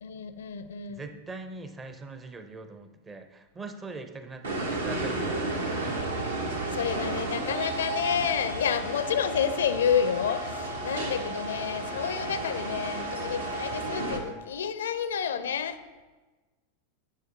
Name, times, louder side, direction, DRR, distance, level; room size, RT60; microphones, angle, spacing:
voice 1, 0.0-1.0 6.7-15.8, left 8 dB, 65° left, 12 dB, 0.4 m, -29 dB
voice 2, 0.9-5.2, right 3 dB, 15° right, 8 dB, 0.6 m, -42 dB
sound 1, 4.4-14.2, right 2 dB, 70° right, 1.1 m, -32 dB
9.5 x 6.0 x 2.7 m, 1.2 s
figure-of-eight pair, 90°, 0 cm